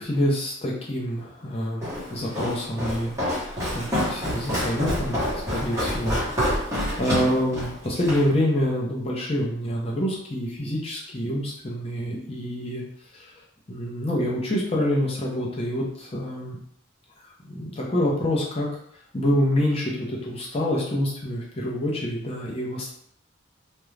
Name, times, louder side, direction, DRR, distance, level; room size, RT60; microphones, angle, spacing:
voice 1, 0.0-1.8 2.1-3.1 3.7-6.7 7.0-12.8 13.7-16.6 17.5-18.7 19.1-22.9, equal, 30° left, -4 dB, 0.6 m, -26 dB
Walk footsteps, 1.8-8.3, equal, 15° right, 0.9 m, -27 dB
2.4 x 2.1 x 3.1 m, 0.68 s
head